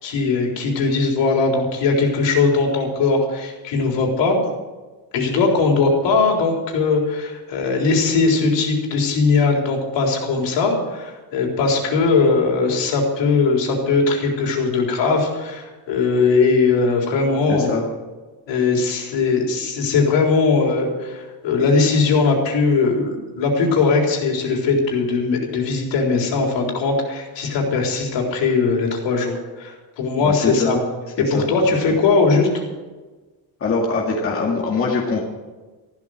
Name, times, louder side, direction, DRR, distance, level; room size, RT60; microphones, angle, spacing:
voice 1, 0.0-4.4 5.1-17.7 18.5-30.8 31.2-32.6, left 4 dB, 70° left, 1 dB, 3.9 m, -19 dB
voice 2, 17.5-17.8 30.2-30.8 31.2-31.5 31.9-32.0 33.6-35.2, left 3 dB, 30° left, -1 dB, 2.0 m, -22 dB
14.5 x 12.0 x 6.4 m, 1.3 s
cardioid pair, 175°, 45 cm